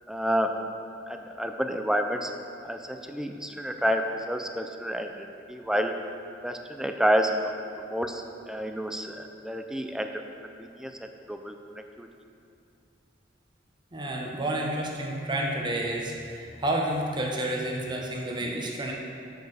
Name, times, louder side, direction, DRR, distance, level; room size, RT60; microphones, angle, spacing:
voice 1, 0.1-0.6 1.1-2.3 2.6-5.1 5.5-5.9 6.4-7.3 7.8-10.1 10.4-12.1, equal, 5° right, 5 dB, 0.4 m, -29 dB
voice 2, 13.9-18.9, right 1 dB, 25° right, -1 dB, 0.9 m, -30 dB
6.8 x 6.5 x 4.9 m, 2.5 s
head